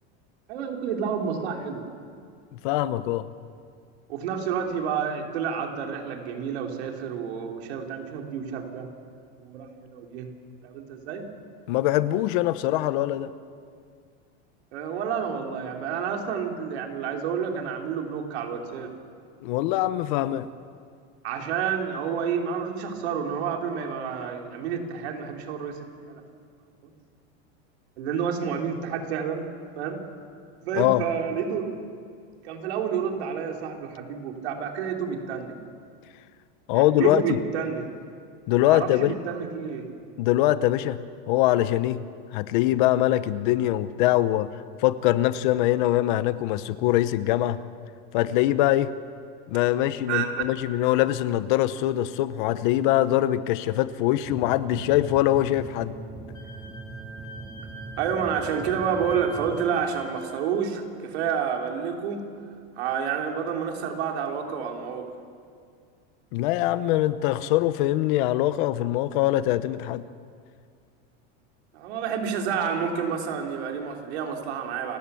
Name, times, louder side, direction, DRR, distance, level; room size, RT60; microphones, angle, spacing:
voice 1, 0.5-1.9 4.1-8.9 9.4-10.3 10.6-11.3 14.7-18.9 21.2-26.2 28.0-29.5 29.8-30.0 30.6-31.7 32.4-35.6 36.7-37.9 38.7-39.9 50.1-50.3 58.0-62.3 62.8-65.1 71.7-75.0, right 7 dB, 75° right, 2 dB, 3.6 m, -29 dB
voice 2, 2.6-3.3 11.7-13.3 19.4-20.5 30.7-31.0 36.7-37.4 38.5-39.1 40.2-41.0 41.3-42.0 42.3-44.5 44.8-47.6 48.1-48.9 49.5-55.9 66.3-70.0, left 14 dB, 50° left, 14 dB, 0.8 m, -23 dB
sound 1, 54.2-59.7, right 3 dB, 5° right, 0.8 m, -41 dB
Wind instrument woodwind instrument, 56.3-60.3, right 2 dB, 10° left, 4.0 m, -44 dB
29.5 x 16.0 x 7.1 m, 2.2 s
supercardioid pair, 175°, 33 cm